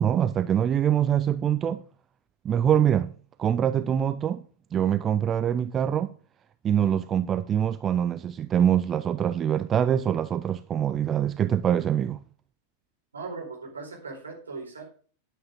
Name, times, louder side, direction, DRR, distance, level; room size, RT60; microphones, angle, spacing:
voice 1, 0.0-1.8 2.4-3.1 3.4-4.4 4.7-6.1 6.6-12.2, right 9 dB, 25° right, 0.5 m, -24 dB
voice 2, 13.1-14.8, right 4 dB, 75° right, 4.4 m, -38 dB
11.5 x 8.7 x 3.5 m
figure-of-eight pair, 90°, 0 cm